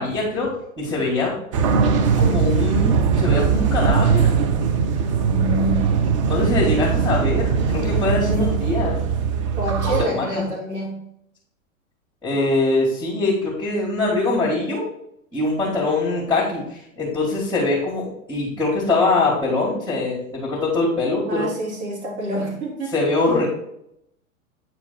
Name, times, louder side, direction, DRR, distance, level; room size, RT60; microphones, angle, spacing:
voice 1, 0.0-1.3 2.2-4.3 6.3-9.0 10.1-10.4 12.2-14.9 15.3-21.4 22.9-23.5, left 2 dB, 5° left, -7 dB, 2.2 m, -23 dB
sound 1, 1.5-10.1, right 6 dB, 25° right, 0.4 m, -20 dB
voice 2, 5.1-5.8 8.2-8.4 9.6-11.0 21.3-23.2, equal, 50° right, -3 dB, 2.9 m, -27 dB
8.8 x 4.4 x 4.2 m, 0.77 s
figure-of-eight pair, 105°, 42 cm